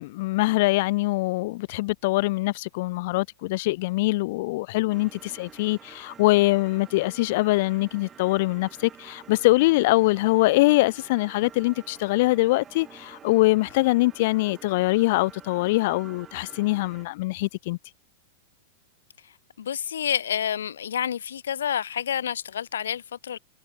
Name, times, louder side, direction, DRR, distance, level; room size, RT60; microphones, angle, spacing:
voice 1, 0.0-17.8, left 20 dB, 55° left, 0.4 m, -23 dB
sound 1, 4.9-17.1, right 8 dB, 25° right, 5.5 m, -49 dB
voice 2, 19.6-23.4, left 9 dB, 75° left, 1.0 m, -29 dB
hypercardioid pair, 100°, 0 cm